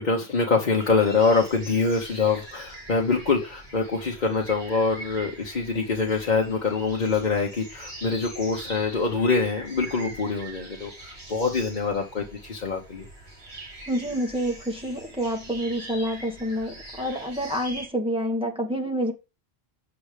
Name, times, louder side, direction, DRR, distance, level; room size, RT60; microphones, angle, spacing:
voice 1, 0.0-13.1, left 4 dB, 45° left, 1.1 m, -25 dB
sound 1, 0.7-17.9, right 1 dB, 80° right, 3.7 m, -43 dB
voice 2, 13.9-19.1, equal, 5° right, 1.4 m, -28 dB
7.0 x 6.9 x 3.3 m
omnidirectional pair, 1.1 m